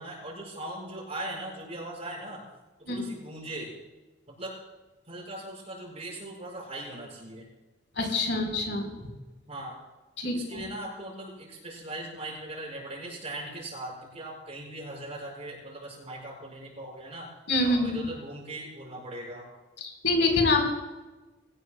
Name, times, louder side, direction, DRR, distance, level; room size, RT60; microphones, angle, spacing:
voice 1, 0.0-2.4 2.8-3.8 4.3-4.5 5.1-7.5 9.5-9.8 10.3-17.3 17.6-19.5, right 1 dB, 35° right, -2 dB, 6.5 m, -39 dB
voice 2, 8.0-8.9 10.2-10.6 17.5-18.0 19.8-20.6, left 2 dB, 65° left, 2 dB, 4.4 m, -26 dB
23.5 x 18.5 x 2.3 m, 1.2 s
head